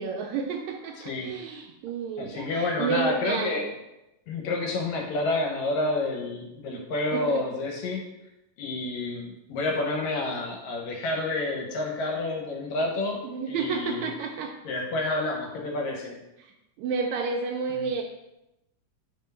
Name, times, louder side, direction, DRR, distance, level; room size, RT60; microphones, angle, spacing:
voice 1, 0.0-3.7 6.7-6.8 7.1-7.5 13.2-14.5 16.4-16.5 16.8-18.0, right 5 dB, 80° right, 2 dB, 1.7 m, -31 dB
voice 2, 1.0-1.3 2.2-3.6 4.3-8.1 8.6-13.2 13.5-14.1 14.6-16.2 17.8-17.9, left 2 dB, 70° left, 1 dB, 2.0 m, -29 dB
4.5 x 4.3 x 5.4 m, 0.90 s
omnidirectional pair, 3.6 m